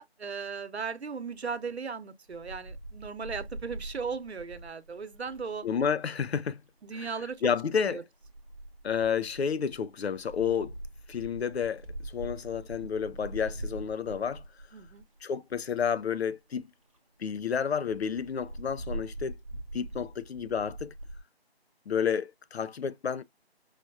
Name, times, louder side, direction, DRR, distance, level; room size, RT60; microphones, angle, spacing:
voice 1, 0.0-5.7 6.8-7.4 7.8-8.0 14.7-15.0, right 5 dB, 80° right, 0.9 m, -37 dB
Wind, 2.3-5.9 7.0-7.5 8.2-15.2 15.8-15.9 16.1-16.2 16.6-16.7 16.9-17.0 17.3-17.4 17.9-21.2, right 1 dB, 30° right, 0.7 m, -43 dB
voice 2, 5.6-6.6 7.0-7.1 7.4-8.0 8.8-10.7 11.1-14.4 15.2-16.7 17.2-19.4 19.7-20.9 21.9-23.2, left 7 dB, 75° left, 0.5 m, -30 dB
5.0 x 2.3 x 2.6 m
figure-of-eight pair, 170°, 32 cm